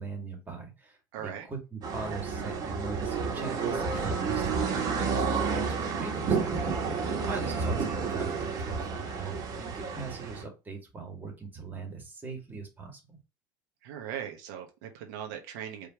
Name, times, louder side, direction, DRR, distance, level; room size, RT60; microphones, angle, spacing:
voice 1, 0.0-13.2, right 4 dB, 20° right, 2 dB, 2.1 m, -41 dB
voice 2, 1.1-1.5 7.0-7.3 13.8-15.9, right 9 dB, 85° right, 3 dB, 1.2 m, -39 dB
sound 1, 1.8-10.4, right 5 dB, 40° right, 1.6 m, -30 dB
5.1 x 3.3 x 3.0 m, 0.27 s
supercardioid pair, 120°, 10 cm